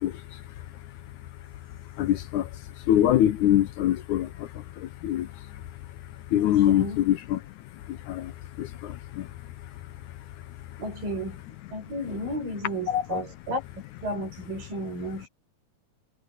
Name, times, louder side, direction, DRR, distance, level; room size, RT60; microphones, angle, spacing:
voice 1, 0.0-0.4 2.0-5.6 6.3-7.4 7.9-8.3 8.6-9.3 12.9-13.2, left 12 dB, 75° left, 2.0 m, -25 dB
voice 2, 6.3-7.0 10.8-11.4 11.7-15.3, right 1 dB, 85° right, 8.0 m, -33 dB
omnidirectional pair, 3.9 m